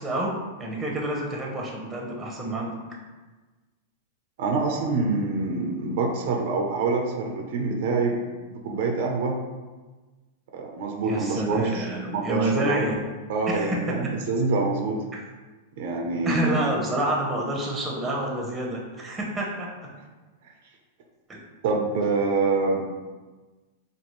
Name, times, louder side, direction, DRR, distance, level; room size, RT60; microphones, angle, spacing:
voice 1, 0.0-2.8 11.0-13.0 13.5-14.1 15.1-15.2 16.2-19.9 21.3-21.4, right 1 dB, 15° right, -1 dB, 0.9 m, -28 dB
voice 2, 4.4-8.3 8.6-9.4 10.5-12.8 13.3-15.0 15.8-16.6 21.6-22.9, right 3 dB, 65° right, 1 dB, 0.7 m, -26 dB
5.2 x 2.3 x 3.1 m, 1.3 s
hypercardioid pair, 110°, 0 cm